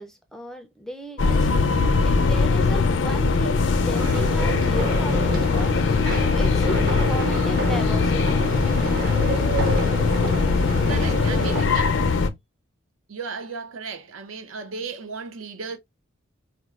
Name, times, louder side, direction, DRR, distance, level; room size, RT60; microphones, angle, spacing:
voice 1, 0.0-1.5 2.0-5.7 6.3-8.4 10.9-11.6, right 1 dB, ahead, 0.4 m, -35 dB
sound 1, 1.2-12.3, left 4 dB, 65° left, 0.4 m, -21 dB
sound 2, 3.9-11.7, right 2 dB, 50° right, 1.1 m, -30 dB
voice 2, 10.9-12.0 13.1-15.8, right 5 dB, 80° right, 0.6 m, -35 dB
4.2 x 2.2 x 2.3 m
head